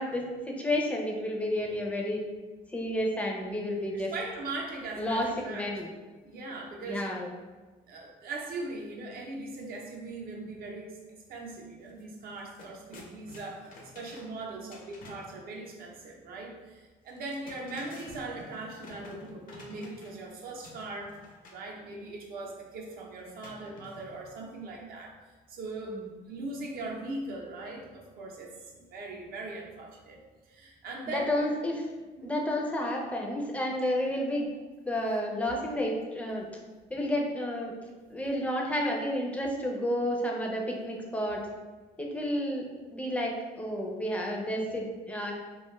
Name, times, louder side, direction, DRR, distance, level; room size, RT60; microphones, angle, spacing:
voice 1, 0.0-2.2 2.7-4.1 5.0-5.9 6.9-7.3 25.8-26.1 31.1-31.9 32.2-34.5 34.9-36.5 36.9-37.7 38.1-41.4 42.0-42.7 42.9-45.3, left 1 dB, 10° left, -1 dB, 0.4 m, -31 dB
voice 2, 3.9-5.7 6.2-7.1 7.9-11.0 11.3-21.1 21.5-25.1 25.5-26.0 26.3-30.2 30.5-31.4 32.2-32.5, right 2 dB, 65° right, -1 dB, 0.6 m, -40 dB
sound 1, 11.9-12.0 12.3-15.4 17.1-20.3 20.6-21.7 23.4-24.3, left 2 dB, 55° left, 0.5 m, -50 dB
2.4 x 2.3 x 3.0 m, 1.3 s
cardioid pair, 110°, 17 cm